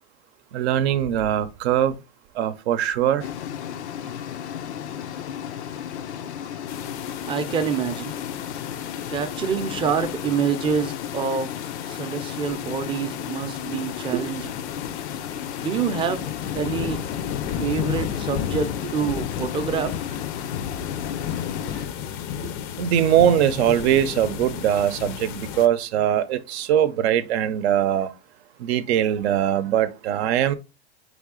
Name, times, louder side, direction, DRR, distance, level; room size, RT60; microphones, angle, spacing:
voice 1, 0.5-2.0 2.4-3.2 14.1-14.2 22.4-22.5 22.8-28.1 28.6-30.5, right 10 dB, 75° right, 0.7 m, -21 dB
sound 1, 3.2-21.9, left 9 dB, 90° left, 0.6 m, -34 dB
sound 2, 6.7-25.7, left 9 dB, 40° left, 0.5 m, -33 dB
voice 2, 7.3-8.1 9.1-11.5 11.9-14.4 15.6-16.2 16.5-17.0 17.5-19.9, right 6 dB, 15° right, 0.5 m, -26 dB
4.0 x 3.5 x 3.7 m
supercardioid pair, 130°, 33 cm